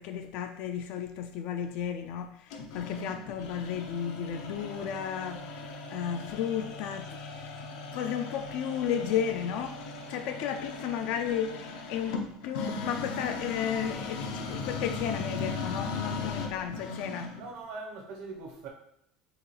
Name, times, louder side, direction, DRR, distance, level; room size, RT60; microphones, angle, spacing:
voice 1, 0.0-7.2 7.5-7.6 7.9-9.7 10.1-17.3, left 8 dB, 65° left, 0.3 m, -33 dB
sound 1, 2.5-17.5, left 3 dB, 90° left, 0.7 m, -38 dB
voice 2, 17.4-18.7, right 3 dB, 65° right, 1.0 m, -41 dB
4.6 x 3.3 x 3.2 m
cardioid pair, 145°, 3 cm